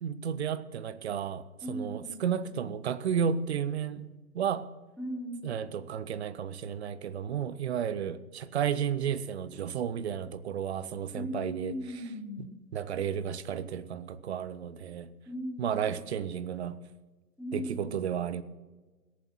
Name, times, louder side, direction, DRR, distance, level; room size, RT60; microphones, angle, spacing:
voice 1, 0.0-4.1 4.3-4.7 5.4-11.7 12.7-15.1 15.6-16.8 17.5-18.4, right 8 dB, 45° right, 0.7 m, -32 dB
voice 2, 1.6-2.2 5.0-5.5 11.1-12.6 15.2-15.8 17.4-18.0, equal, ahead, 3.2 m, -38 dB
17.0 x 7.3 x 6.2 m
figure-of-eight pair, 115°, 46 cm